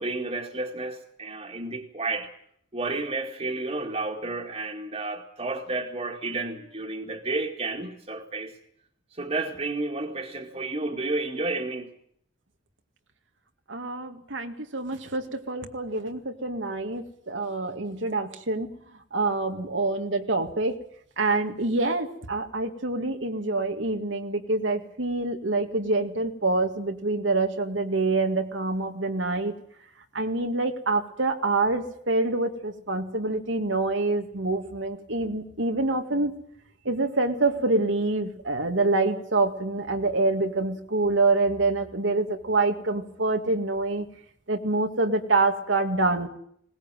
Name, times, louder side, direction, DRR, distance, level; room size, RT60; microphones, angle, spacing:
voice 1, 0.0-2.3 2.7-8.5 9.1-11.9, right 2 dB, 35° right, 2.1 m, -31 dB
voice 2, 13.7-18.7 19.1-20.8 21.2-29.5 30.1-36.3 36.9-44.1 44.5-46.3, right 2 dB, 85° right, 2.1 m, -26 dB
21.0 x 19.0 x 9.1 m
head